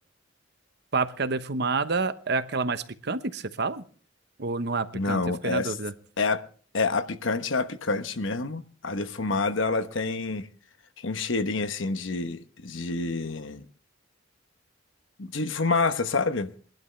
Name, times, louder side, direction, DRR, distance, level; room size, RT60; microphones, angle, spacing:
voice 1, 0.9-3.8 4.4-5.9, right 3 dB, 60° right, 1.0 m, -28 dB
voice 2, 4.9-5.7 6.2-6.5 6.7-10.5 11.0-13.6 15.2-16.5, left 3 dB, 75° left, 1.1 m, -28 dB
21.5 x 12.0 x 3.3 m
head